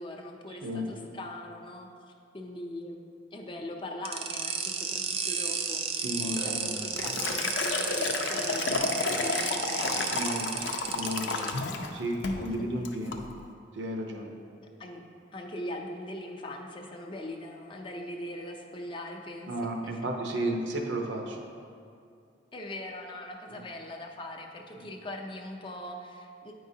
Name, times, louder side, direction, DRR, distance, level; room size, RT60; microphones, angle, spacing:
voice 1, 0.0-3.0 3.3-10.0 12.4-12.6 14.8-20.0 22.5-26.5, left 1 dB, 25° left, 1 dB, 0.5 m, -41 dB
sound 1, 4.1-11.5, right 6 dB, 30° right, 0.4 m, -32 dB
voice 2, 6.0-6.7 10.1-10.5 10.9-11.6 11.9-13.2 13.7-14.3 19.5-21.4 23.5-23.6 24.8-24.9, right 1 dB, 80° right, 1 dB, 0.7 m, -33 dB
Liquid, 6.4-11.9 12.2-12.5 12.9-13.2, left 4 dB, 85° left, 0.5 m, -31 dB
9.2 x 4.7 x 2.7 m, 2.4 s
head